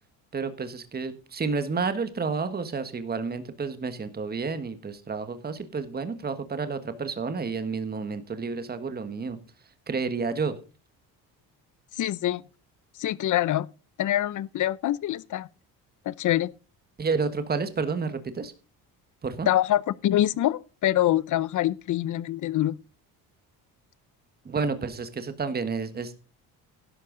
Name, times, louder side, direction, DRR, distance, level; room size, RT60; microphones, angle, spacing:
voice 1, 0.3-9.4 9.9-10.5 17.0-18.5 19.2-19.5 24.4-26.1, right 4 dB, 25° right, 1.4 m, -30 dB
voice 2, 12.0-12.4 13.0-13.7 14.0-15.5 16.1-16.5 19.5-22.7, left 13 dB, 55° left, 0.7 m, -25 dB
12.5 x 11.5 x 3.9 m
cardioid pair, 115°, 38 cm